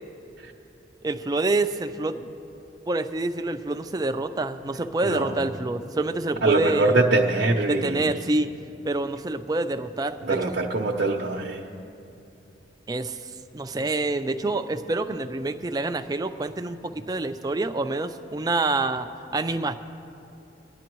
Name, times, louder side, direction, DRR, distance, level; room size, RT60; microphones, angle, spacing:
voice 1, 1.0-2.3 2.9-7.0 7.7-8.5 8.8-10.5 12.9-13.2 13.5-19.1 19.3-19.7, right 2 dB, 20° right, 8 dB, 0.4 m, -27 dB
voice 2, 5.0-5.4 6.4-8.1 10.2-11.6, right 2 dB, 65° right, -2 dB, 0.7 m, -23 dB
23.5 x 10.5 x 3.1 m, 2.7 s
head